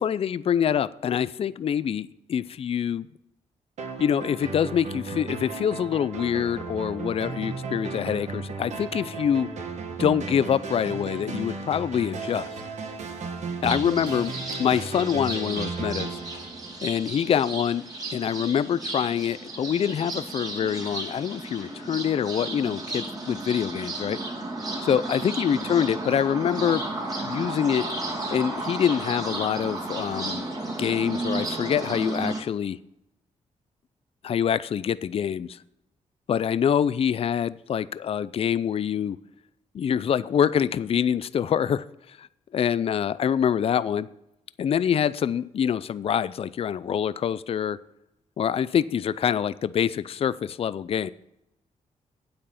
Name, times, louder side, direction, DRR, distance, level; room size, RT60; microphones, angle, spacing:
voice 1, 0.0-3.1 4.0-9.5 10.0-12.5 13.6-14.3 14.6-16.2 16.8-17.8 18.1-24.2 24.8-26.8 27.2-27.9 28.3-30.5 30.8-32.8 34.2-35.6 36.3-39.2 39.7-42.3 42.5-44.1 44.6-47.8 48.4-51.1, left 8 dB, 50° left, 17 dB, 0.4 m, -25 dB
sound 1, 3.8-17.3, right 4 dB, 65° right, 1.8 m, -35 dB
sound 2, 13.6-32.4, right 2 dB, 30° right, 2.7 m, -33 dB
9.0 x 8.6 x 5.8 m, 0.85 s
cardioid pair, 100°, 13 cm